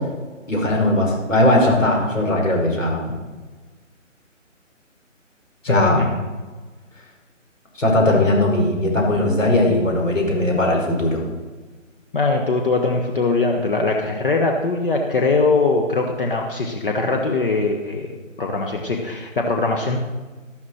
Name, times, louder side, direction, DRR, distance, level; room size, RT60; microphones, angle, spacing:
voice 1, 0.5-3.0 5.6-6.0 7.8-11.2, left 1 dB, 70° left, 0 dB, 5.2 m, -18 dB
voice 2, 5.7-6.2 12.1-20.0, left 3 dB, 45° left, 2 dB, 1.4 m, -21 dB
13.0 x 12.5 x 4.4 m, 1.3 s
figure-of-eight pair, 155°, 39 cm